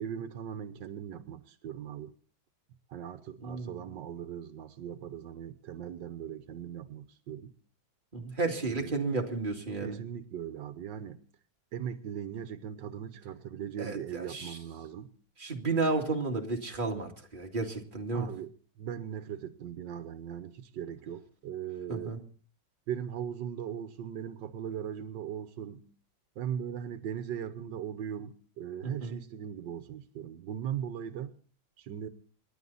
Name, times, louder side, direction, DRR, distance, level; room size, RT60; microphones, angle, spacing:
voice 1, 0.0-2.1 2.9-7.5 8.6-9.0 9.7-11.2 11.7-15.1 18.1-22.1 22.9-25.9 26.4-31.3 31.8-32.1, right 9 dB, 85° right, 1.6 m, -39 dB
voice 2, 3.4-3.8 8.1-10.0 13.8-14.6 15.4-18.3 21.9-22.2 28.8-29.2, right 3 dB, 25° right, 2.4 m, -32 dB
28.5 x 11.5 x 4.1 m
omnidirectional pair, 1.9 m